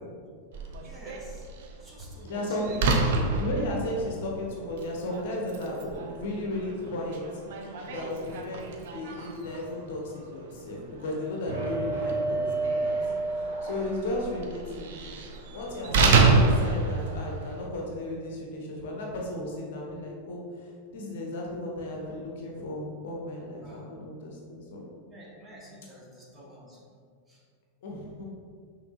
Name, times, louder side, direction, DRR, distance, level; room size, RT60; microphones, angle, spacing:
Slam, 0.5-17.7, right 3 dB, 55° right, 0.5 m, -29 dB
voice 1, 0.8-1.5 1.8-2.8 13.5-13.8 23.6-23.9 25.0-26.9 27.3-27.4, equal, 10° right, -5 dB, 1.1 m, -48 dB
voice 2, 2.2-3.0 3.4-7.4 7.9-8.6 8.9-13.0 13.4-15.1 15.5-24.8 27.8-28.3, left 1 dB, 55° left, -1 dB, 0.7 m, -35 dB
sound 1, 11.5-14.1, right 2 dB, 80° right, 1.4 m, -30 dB
6.0 x 3.2 x 2.4 m, 2.1 s
figure-of-eight pair, 90°, 0 cm